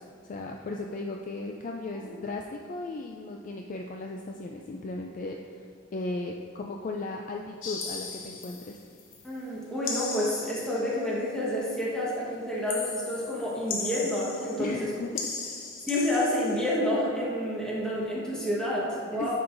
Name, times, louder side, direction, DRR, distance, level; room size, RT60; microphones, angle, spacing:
voice 1, 0.0-8.8 14.6-15.7 19.1-19.4, left 2 dB, 40° left, 1 dB, 0.3 m, -36 dB
sound 1, 7.6-9.3 9.8-11.0 12.7-14.8 15.1-16.8, left 4 dB, 65° left, 0.9 m, -37 dB
voice 2, 9.2-14.9 15.9-19.4, left 1 dB, 5° left, -7 dB, 1.2 m, -29 dB
10.0 x 5.5 x 2.6 m, 2.3 s
head